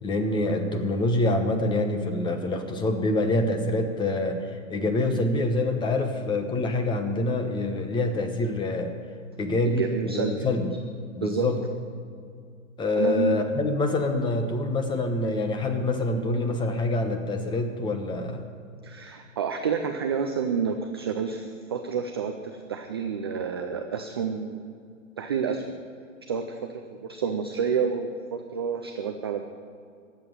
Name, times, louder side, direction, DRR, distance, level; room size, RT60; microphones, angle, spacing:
voice 1, 0.0-8.9 9.4-10.7 11.2-11.6 12.8-18.5, left 2 dB, 10° left, 6 dB, 1.0 m, -26 dB
voice 2, 9.6-10.5 11.2-11.5 13.0-13.5 18.8-24.6 25.2-25.7 26.3-29.4, right 6 dB, 20° right, 5 dB, 0.3 m, -29 dB
12.0 x 8.0 x 9.2 m, 2.3 s
hypercardioid pair, 135°, 40 cm